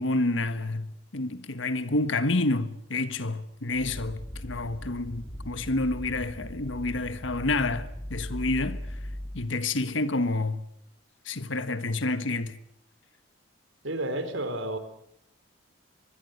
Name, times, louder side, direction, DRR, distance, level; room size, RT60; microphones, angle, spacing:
voice 1, 0.0-9.0 9.3-10.6 11.2-12.6, left 2 dB, 75° left, 1.4 m, -29 dB
sound 1, 3.7-9.5, equal, 15° left, 2.6 m, -39 dB
voice 2, 13.8-14.8, right 1 dB, 80° right, 4.0 m, -31 dB
25.5 x 21.0 x 8.0 m
head